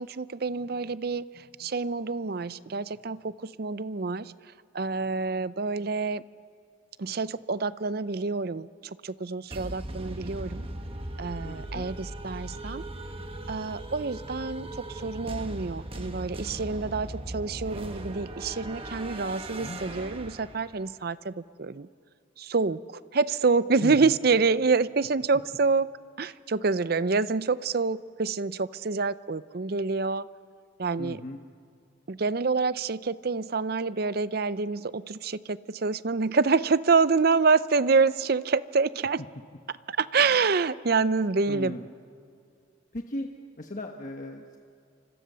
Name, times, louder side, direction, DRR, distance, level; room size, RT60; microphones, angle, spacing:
voice 1, 0.0-4.3 4.7-6.2 7.0-10.7 11.2-12.8 13.5-21.9 22.4-25.9 26.2-30.3 30.8-31.2 32.1-39.2 39.9-41.8, right 4 dB, 50° right, 16 dB, 0.5 m, -27 dB
sound 1, 9.5-20.9, right 1 dB, 30° right, 1.3 m, -38 dB
voice 2, 11.4-11.9 19.6-19.8 23.8-24.1 31.0-31.4 41.5-41.8 42.9-43.3 43.6-44.6, left 1 dB, 40° left, 3 dB, 1.2 m, -36 dB
29.0 x 25.5 x 6.9 m, 2.3 s
head